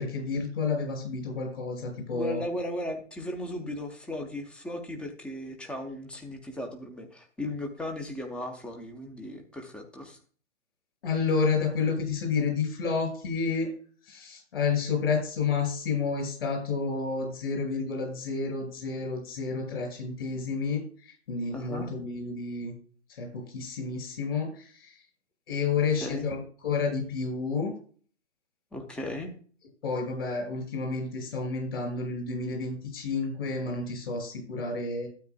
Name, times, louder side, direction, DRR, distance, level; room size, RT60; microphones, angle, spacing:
voice 1, 0.0-2.4 11.0-13.7 14.0-22.7 23.1-25.0 25.5-27.7 29.8-35.1, left 4 dB, 55° left, 3 dB, 5.2 m, -30 dB
voice 2, 2.1-10.2 21.5-21.9 25.8-26.3 28.7-29.3, left 1 dB, 5° left, 4 dB, 0.6 m, -36 dB
12.5 x 8.7 x 2.2 m, 0.43 s
figure-of-eight pair, 125°, 36 cm